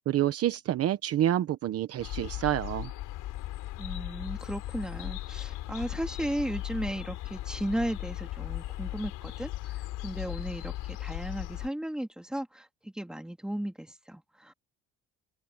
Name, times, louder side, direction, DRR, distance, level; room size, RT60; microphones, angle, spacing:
voice 1, 0.1-2.9, right 12 dB, 50° right, 1.0 m, -28 dB
sound 1, 2.0-11.7, left 15 dB, 80° left, 4.0 m, -37 dB
voice 2, 3.8-9.5 10.0-14.5, right 1 dB, ahead, 2.3 m, -35 dB
cardioid pair, 160°, 31 cm